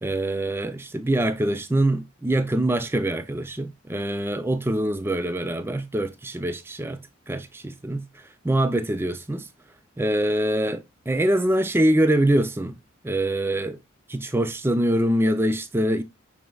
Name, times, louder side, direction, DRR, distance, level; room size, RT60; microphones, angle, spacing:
voice 1, 0.0-9.5 10.0-12.7 13.0-13.8 14.1-16.0, right 1 dB, 10° right, 0.4 m, -24 dB
6.2 x 3.7 x 2.3 m
head